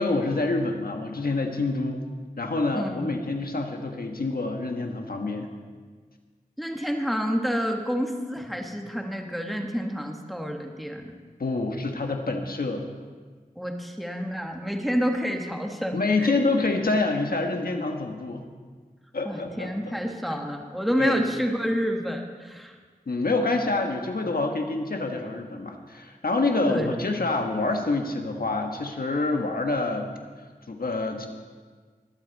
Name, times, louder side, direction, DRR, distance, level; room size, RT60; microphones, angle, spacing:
voice 1, 0.0-2.0 2.4-5.5 11.4-12.9 15.9-18.5 19.1-19.9 20.3-20.4 21.0-21.2 23.1-30.1 30.7-31.3, left 3 dB, 75° left, 3 dB, 1.4 m, -27 dB
voice 2, 2.7-3.0 6.6-11.1 13.5-16.3 19.2-22.7 26.7-26.9, equal, ahead, 2 dB, 1.6 m, -28 dB
22.5 x 8.0 x 4.1 m, 1.5 s
wide cardioid pair, 50°, 15 cm